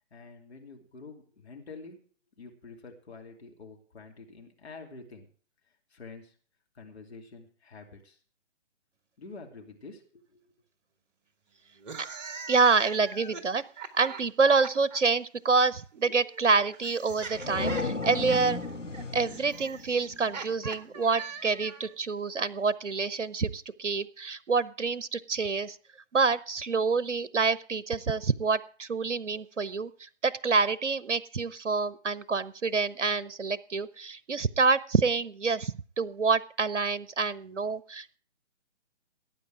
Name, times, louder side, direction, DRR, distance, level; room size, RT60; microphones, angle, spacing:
voice 1, 0.1-2.0 2.4-5.3 5.7-6.4 6.7-8.2 9.2-10.5, left 4 dB, 60° left, 2 dB, 2.9 m, -47 dB
sound 1, 11.8-15.0 16.1-21.9, right 5 dB, 35° right, 1.8 m, -42 dB
voice 2, 12.5-13.6 13.9-18.6 19.1-25.8 26.1-38.2, right 4 dB, 75° right, 18 dB, 0.8 m, -27 dB
sound 2, 17.1-20.7, left 3 dB, 85° left, 1.8 m, -35 dB
18.0 x 9.1 x 4.8 m, 0.43 s
figure-of-eight pair, 140°, 36 cm